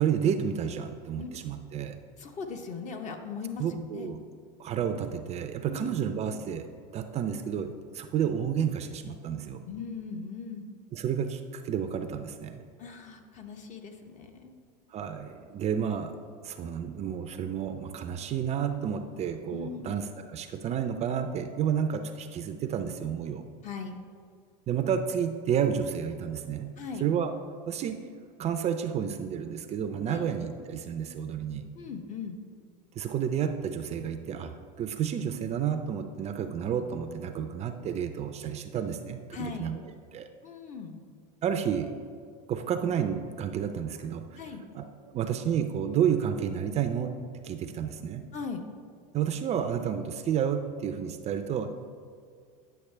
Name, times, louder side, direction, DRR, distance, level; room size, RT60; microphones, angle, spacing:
voice 1, 0.0-2.0 3.6-4.2 4.6-9.6 10.9-12.6 14.9-16.1 16.4-23.4 24.7-26.7 27.0-27.3 27.7-28.0 28.4-31.6 33.0-39.8 40.1-40.3 41.4-41.9 42.5-44.4 44.7-47.1 47.4-48.2 49.1-51.7, right 8 dB, 30° right, 7 dB, 0.4 m, -31 dB
voice 2, 2.2-4.1 5.7-6.0 9.7-10.7 12.8-14.6 19.5-20.0 23.6-24.0 26.8-27.1 30.1-30.3 31.8-32.4 39.3-39.8 40.4-41.0 44.4-44.6 48.3-48.6, left 5 dB, 35° left, 5 dB, 0.9 m, -39 dB
9.7 x 6.4 x 3.3 m, 2.1 s
supercardioid pair, 115°, 21 cm